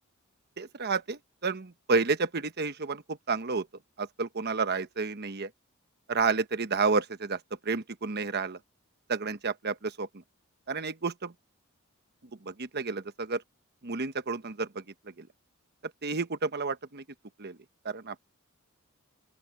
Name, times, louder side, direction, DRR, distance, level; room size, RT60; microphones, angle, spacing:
voice 1, 0.6-3.0 3.3-3.7 4.0-5.5 6.1-7.4 7.6-8.6 9.1-10.1 10.7-11.3 12.4-13.4 13.8-14.8 15.2-15.3 16.0-17.0 17.4-17.6 17.8-18.2, right 4 dB, 50° right, 1.1 m, -30 dB
open air
head